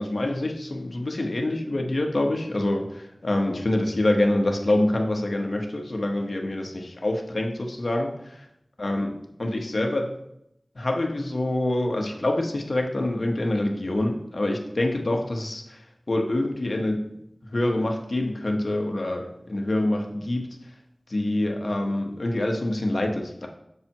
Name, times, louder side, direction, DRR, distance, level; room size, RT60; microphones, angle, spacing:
voice 1, 0.0-8.4 8.8-9.1 9.4-10.1 10.8-15.8 16.1-17.1 17.5-20.5 21.1-23.5, left 1 dB, 65° left, 2 dB, 1.2 m, -26 dB
8.9 x 6.8 x 3.0 m, 0.79 s
wide cardioid pair, 50°, 0 cm